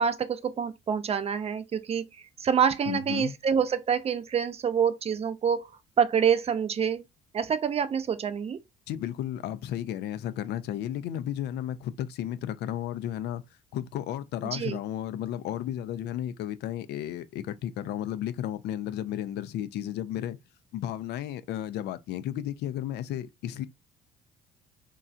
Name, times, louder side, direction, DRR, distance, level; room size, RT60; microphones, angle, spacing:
voice 1, 0.0-2.0 2.4-5.7 6.0-7.0 7.3-8.6 14.5-14.8, right 7 dB, 30° right, 0.5 m, -26 dB
voice 2, 2.9-3.4 8.9-13.4 13.7-20.4 20.7-23.6, left 11 dB, 55° left, 0.4 m, -33 dB
3.0 x 2.3 x 2.4 m
hypercardioid pair, 50°, 20 cm